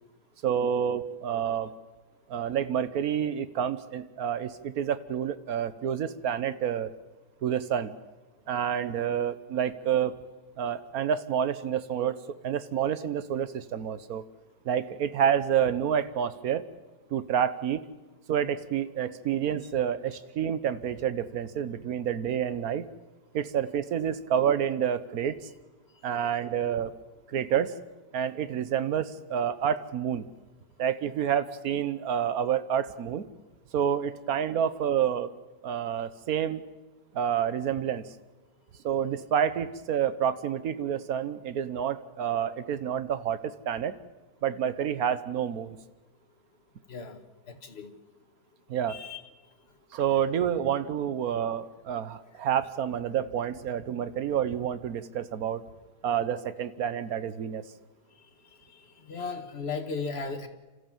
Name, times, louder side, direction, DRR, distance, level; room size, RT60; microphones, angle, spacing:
voice 1, 0.4-1.7 2.3-6.9 7.4-7.9 8.5-10.1 10.6-12.2 12.4-14.2 14.6-16.6 17.1-17.8 18.3-22.9 23.3-25.4 26.0-26.9 27.3-27.7 28.1-30.2 30.8-33.2 33.7-35.3 35.6-36.6 37.1-38.0 38.8-44.0 44.4-45.8 48.7-49.0 49.9-55.6 56.0-57.6, right 9 dB, 65° right, 13 dB, 1.4 m, -28 dB
voice 2, 46.9-47.2 47.5-47.9 48.9-49.2 59.1-60.5, left 4 dB, 40° left, 6 dB, 1.7 m, -35 dB
27.5 x 14.0 x 7.3 m, 1.2 s
omnidirectional pair, 1.7 m